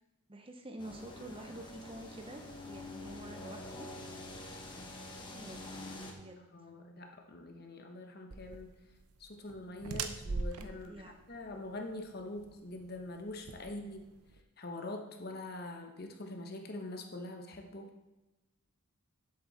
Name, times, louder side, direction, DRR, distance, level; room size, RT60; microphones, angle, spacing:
voice 1, 0.3-3.9 5.1-5.7 6.1-6.4 10.9-11.2, right 1 dB, 25° right, 5 dB, 0.8 m, -48 dB
sound 1, 0.8-6.1, left 2 dB, 20° left, 1.2 m, -46 dB
voice 2, 6.5-8.7 9.2-14.0 14.6-17.9, left 2 dB, 45° left, 3 dB, 1.1 m, -44 dB
sound 2, 8.3-14.4, right 4 dB, 90° right, 0.8 m, -42 dB
11.0 x 7.8 x 4.2 m, 1.1 s
head